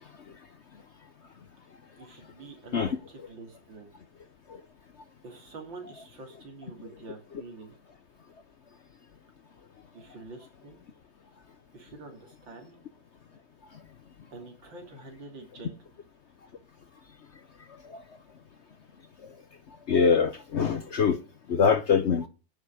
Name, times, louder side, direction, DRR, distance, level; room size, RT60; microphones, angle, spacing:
voice 1, 2.0-3.9 5.2-7.8 9.9-10.8 11.7-12.8 14.3-15.8, right 3 dB, 75° right, 3.6 m, -46 dB
voice 2, 19.9-21.2 21.5-22.3, left 6 dB, 55° left, 0.7 m, -23 dB
10.5 x 7.4 x 8.2 m
omnidirectional pair, 2.1 m